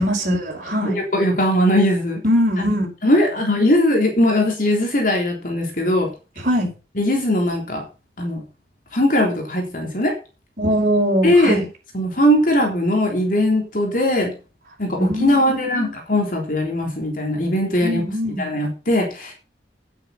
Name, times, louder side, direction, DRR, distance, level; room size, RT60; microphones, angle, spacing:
voice 1, 0.0-1.0 2.2-2.9 6.4-6.7 10.6-11.6 15.0-15.9 17.8-18.5, equal, 45° right, -1 dB, 5.7 m, -21 dB
voice 2, 0.8-2.2 3.0-6.1 7.0-7.8 8.2-8.4 8.9-10.1 11.2-11.6 11.9-14.3 14.8-18.0 18.4-19.3, left 1 dB, 50° left, 2 dB, 3.5 m, -19 dB
9.9 x 8.8 x 5.8 m, 0.32 s
head